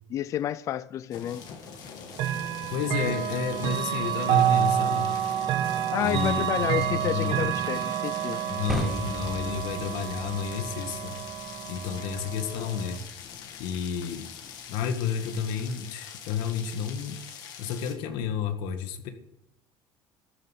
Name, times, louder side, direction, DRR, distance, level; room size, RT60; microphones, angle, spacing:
voice 1, 0.1-1.4 5.9-8.4, left 11 dB, 40° left, 0.4 m, -30 dB
sound 1, 1.1-17.9, left 7 dB, 60° left, 2.3 m, -44 dB
Chime / Clock, 2.1-13.0, right 10 dB, 65° right, 1.3 m, -29 dB
voice 2, 2.7-5.1 6.0-7.5 8.5-11.1 11.7-13.0 13.6-14.3 14.7-17.2 17.6-19.1, left 7 dB, 90° left, 1.8 m, -31 dB
sound 2, 8.7-14.8, equal, ahead, 0.9 m, -39 dB
13.5 x 9.8 x 8.2 m
cardioid pair, 160°, 8 cm